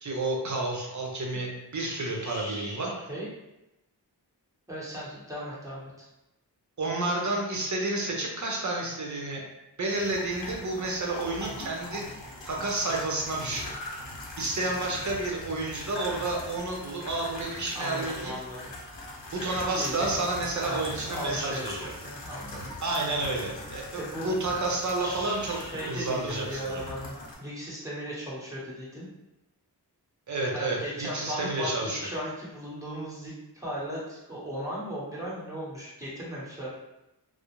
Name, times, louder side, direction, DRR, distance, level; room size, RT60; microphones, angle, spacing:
voice 1, 0.0-2.9 6.8-9.4 9.8-12.0 12.4-13.7 14.4-18.3 19.3-21.9 22.8-26.8 30.3-32.0, right 2 dB, 40° right, -1 dB, 0.7 m, -30 dB
voice 2, 2.1-3.3 4.7-6.1 17.7-18.7 19.8-20.2 20.5-22.6 23.9-24.3 25.0-29.1 30.5-36.8, equal, 5° right, -7 dB, 1.1 m, -37 dB
sound 1, 9.9-27.3, left 1 dB, 80° left, 0.7 m, -41 dB
2.3 x 2.0 x 3.0 m, 0.93 s
cardioid pair, 45°, 43 cm